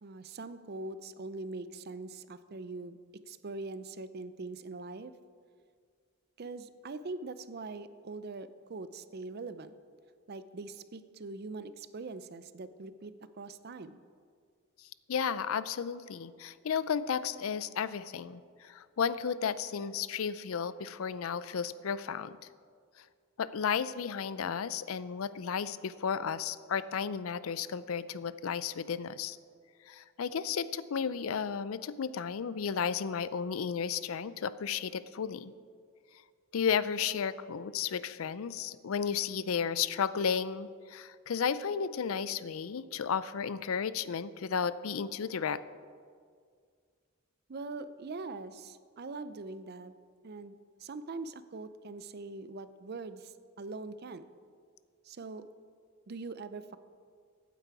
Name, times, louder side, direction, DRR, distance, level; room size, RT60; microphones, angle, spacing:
voice 1, 0.0-3.0 3.3-5.1 6.4-9.7 10.3-14.0 47.5-49.9 50.2-50.5 50.8-54.3 55.0-55.4 56.1-56.8, right 3 dB, 50° right, 13 dB, 0.5 m, -42 dB
voice 2, 15.1-22.4 23.4-29.4 29.9-35.5 36.5-45.6, left 7 dB, 80° left, 16 dB, 0.5 m, -33 dB
15.0 x 9.2 x 4.8 m, 2.1 s
head